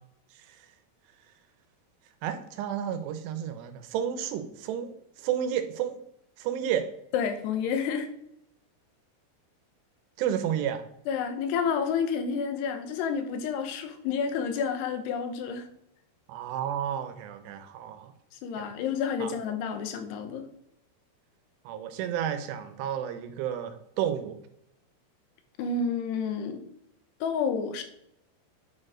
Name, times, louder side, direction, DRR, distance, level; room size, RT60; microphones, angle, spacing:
voice 1, 2.2-4.9 5.2-6.0 6.4-6.9 10.2-10.8 16.3-18.1 18.6-18.7 19.2-19.3 21.7-24.4, right 9 dB, 85° right, 9 dB, 2.9 m, -31 dB
voice 2, 7.1-8.1 11.1-15.7 18.4-20.5 25.6-26.6 27.2-27.8, left 6 dB, 80° left, 7 dB, 3.0 m, -29 dB
9.3 x 4.4 x 4.9 m, 0.78 s
omnidirectional pair, 4.8 m